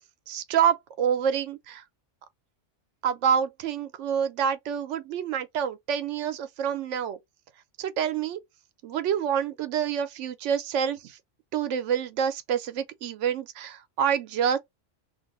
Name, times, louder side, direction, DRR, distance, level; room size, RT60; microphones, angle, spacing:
voice 1, 0.3-1.8 3.0-7.2 7.8-8.4 8.8-11.2 11.5-14.6, right 8 dB, 80° right, 0.9 m, -27 dB
2.8 x 2.0 x 3.7 m
omnidirectional pair, 1.3 m